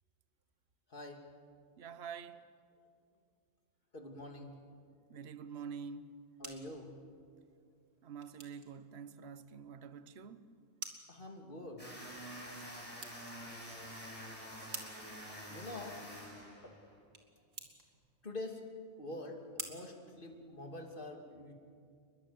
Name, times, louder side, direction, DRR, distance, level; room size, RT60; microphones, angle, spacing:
voice 1, 0.9-1.2 3.9-4.6 6.4-6.9 11.1-11.9 15.5-16.0 16.6-16.7 18.2-18.6 19.0-21.5, left 1 dB, 40° left, 2.8 m, -45 dB
voice 2, 1.8-2.5 5.1-6.2 8.0-10.5, right 6 dB, 55° right, 1.2 m, -47 dB
sound 1, 6.0-20.9, right 3 dB, 75° right, 2.7 m, -53 dB
sound 2, 11.8-17.0, equal, 25° left, 6.2 m, -48 dB
29.5 x 21.5 x 8.0 m
omnidirectional pair, 1.3 m